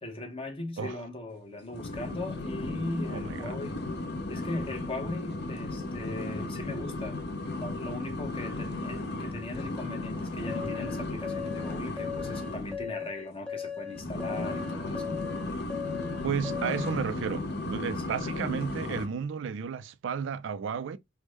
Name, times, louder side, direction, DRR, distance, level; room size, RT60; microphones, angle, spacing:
voice 1, 0.0-3.8 4.3-7.2 7.5-15.1, left 2 dB, 30° left, 0.8 m, -39 dB
sound 1, 1.7-12.8 13.9-19.1, left 2 dB, 55° left, 0.7 m, -35 dB
voice 2, 3.1-3.6 16.2-21.0, right 6 dB, 65° right, 0.3 m, -33 dB
sound 2, 10.5-17.0, left 7 dB, 5° left, 0.5 m, -38 dB
3.4 x 2.1 x 3.0 m
head